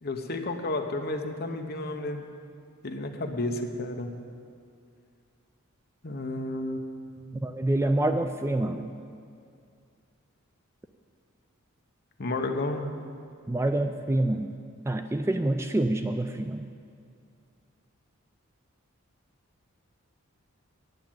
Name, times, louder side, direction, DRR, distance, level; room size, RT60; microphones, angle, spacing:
voice 1, 0.0-2.3 2.8-4.2 6.0-6.8 7.1-7.4 12.2-12.9, left 2 dB, 45° left, 4 dB, 0.9 m, -32 dB
voice 2, 7.4-8.9 13.5-14.6 14.9-16.7, right 1 dB, 10° right, 7 dB, 0.3 m, -27 dB
9.4 x 7.3 x 9.1 m, 2.3 s
head